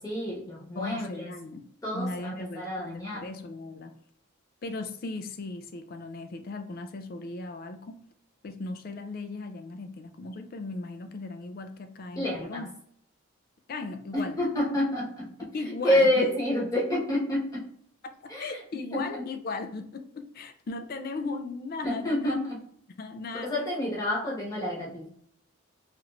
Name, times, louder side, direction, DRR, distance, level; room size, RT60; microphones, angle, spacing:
voice 1, 0.0-1.3 1.8-3.3 12.1-12.6 14.1-15.3 15.6-17.6 18.3-18.6 18.9-19.0 21.8-22.6 23.4-25.1, left 1 dB, 15° left, -6 dB, 1.1 m, -28 dB
voice 2, 0.8-4.0 4.6-8.0 8.4-12.7 13.7-14.4 15.4-16.3 18.0-22.3 23.0-23.7, left 3 dB, 45° left, 8 dB, 0.3 m, -37 dB
3.1 x 2.5 x 3.1 m, 0.64 s
head